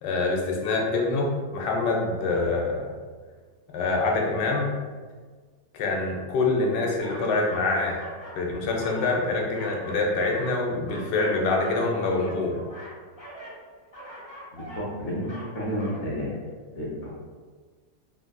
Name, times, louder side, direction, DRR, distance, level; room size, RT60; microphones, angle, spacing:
voice 1, 0.0-2.9 3.7-4.7 5.7-8.0 8.3-12.6, left 3 dB, 90° left, -1 dB, 1.3 m, -25 dB
sound 1, 7.0-8.4 8.7-10.0 10.3-11.8 12.1-13.6 13.9-14.9 15.2-15.5 15.8-16.0, right 1 dB, 30° left, 0.6 m, -43 dB
voice 2, 14.5-16.3 16.7-17.1, equal, 60° left, -4 dB, 0.8 m, -31 dB
3.3 x 2.4 x 2.2 m, 1.5 s
omnidirectional pair, 1.9 m